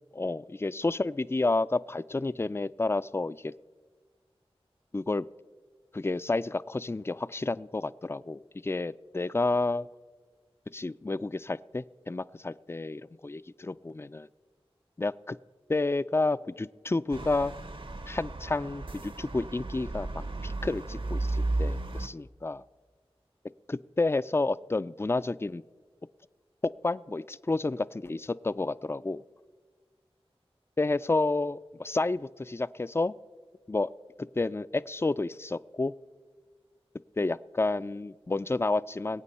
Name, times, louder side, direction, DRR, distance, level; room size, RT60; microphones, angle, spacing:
voice 1, 0.1-3.5 4.9-5.3 5.9-9.9 10.7-14.3 15.0-15.4 15.7-17.5 18.1-22.6 23.7-25.6 26.6-29.2 30.8-33.1 33.7-33.9 34.4-35.9 37.2-39.2, left 2 dB, 25° left, 17 dB, 0.3 m, -30 dB
sound 1, 17.1-22.1, right 2 dB, 55° right, 0.8 m, -34 dB
21.5 x 9.0 x 4.2 m, 1.5 s
wide cardioid pair, 50°, 10 cm